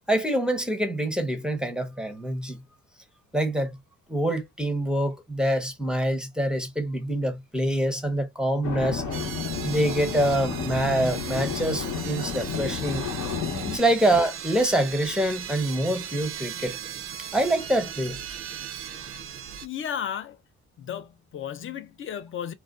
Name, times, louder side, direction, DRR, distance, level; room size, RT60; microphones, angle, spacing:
voice 1, 0.1-2.6 3.3-3.8 4.1-9.0 9.6-13.0 13.7-16.8 17.3-18.2, right 1 dB, 5° right, 0.6 m, -25 dB
sound 1, 8.6-13.8, left 6 dB, 65° left, 0.9 m, -31 dB
sound 2, 9.1-19.7, right 9 dB, 45° right, 0.4 m, -38 dB
voice 2, 19.3-20.4 20.8-22.5, left 9 dB, 45° left, 0.5 m, -34 dB
2.4 x 2.2 x 2.3 m
cardioid pair, 90°, 30 cm